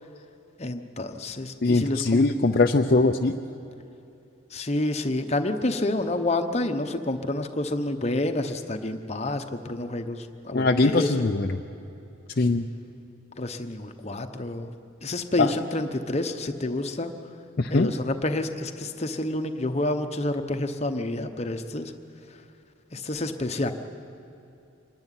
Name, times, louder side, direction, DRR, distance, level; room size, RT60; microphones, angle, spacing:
voice 1, 0.6-2.2 4.5-11.3 13.4-14.7 15.0-17.1 17.7-21.9 22.9-23.7, left 1 dB, 30° left, 7 dB, 1.0 m, -29 dB
voice 2, 1.6-3.4 10.5-11.6 12.4-12.7 15.4-15.5 17.6-17.9, left 3 dB, 50° left, 4 dB, 0.6 m, -21 dB
25.5 x 11.5 x 10.0 m, 2.7 s
head